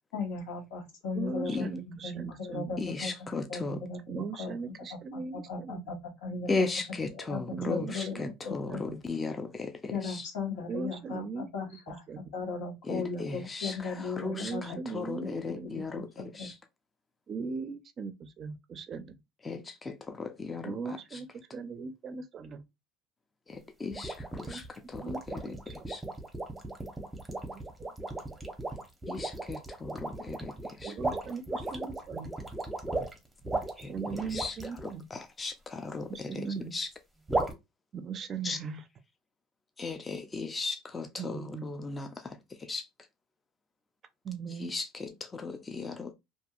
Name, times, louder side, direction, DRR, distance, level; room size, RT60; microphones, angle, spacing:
voice 1, 0.1-4.5 5.1-6.0 6.2-6.7 7.1-8.1 8.4-8.8 9.9-12.0 12.3-15.6 15.9-16.5, left 4 dB, 85° left, 1.2 m, -37 dB
voice 2, 1.1-2.8 4.1-6.0 7.5-8.3 8.6-9.0 10.7-12.2 14.3-15.9 17.3-19.2 20.6-22.6 24.4-24.6 24.9-25.9 27.5-27.6 30.8-32.3 33.8-35.1 36.1-36.8 37.9-38.9 41.2-41.7 44.2-44.7, right 5 dB, 40° right, 0.4 m, -39 dB
voice 3, 2.8-3.8 6.5-10.3 12.9-16.1 16.3-16.5 19.5-20.7 23.5-24.6 24.9-25.0 25.3-25.5 25.9-26.0 29.1-30.5 30.8-30.9 33.8-33.9 34.3-34.5 35.1-36.3 36.7-36.9 38.4-38.6 39.8-42.4 42.6-42.8 44.6-44.9 45.2-46.1, left 3 dB, 20° left, 0.4 m, -36 dB
sound 1, 23.9-34.9 37.3-37.5, right 2 dB, 10° right, 0.7 m, -36 dB
2.7 x 2.5 x 2.4 m
supercardioid pair, 110°, 0 cm